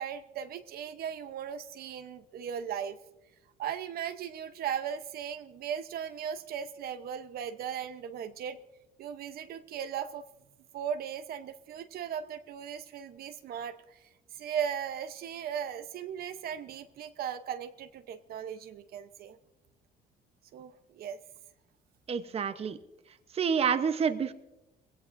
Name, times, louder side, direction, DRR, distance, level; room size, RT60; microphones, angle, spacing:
voice 1, 0.0-3.0 3.6-8.6 9.0-10.3 10.7-19.4 20.5-21.2, right 8 dB, 65° right, 9 dB, 0.9 m, -37 dB
voice 2, 22.1-22.8 23.3-24.3, right 7 dB, 35° right, 10 dB, 0.9 m, -28 dB
22.5 x 17.0 x 2.6 m, 0.96 s
cardioid pair, 110°, 17 cm